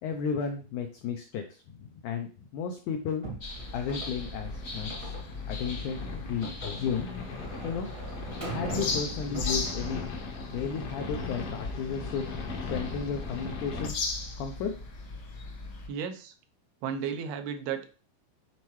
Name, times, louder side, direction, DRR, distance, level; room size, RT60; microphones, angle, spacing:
voice 1, 0.0-3.2 3.7-5.2 5.5-7.1 7.6-7.9 8.4-10.0 10.5-12.2 12.7-14.0 14.4-14.7, left 6 dB, 90° left, 4 dB, 1.7 m, -33 dB
sound 1, 3.2-10.1 10.4-11.0, right 1 dB, 45° right, 1.0 m, -42 dB
sound 2, 3.4-15.9, left 3 dB, 55° left, 1.2 m, -38 dB
sound 3, 4.2-13.9, left 3 dB, 75° left, 1.3 m, -39 dB
voice 2, 15.9-16.3 16.8-18.0, right 7 dB, 85° right, 7 dB, 2.7 m, -34 dB
9.6 x 4.2 x 3.1 m, 0.37 s
omnidirectional pair, 4.4 m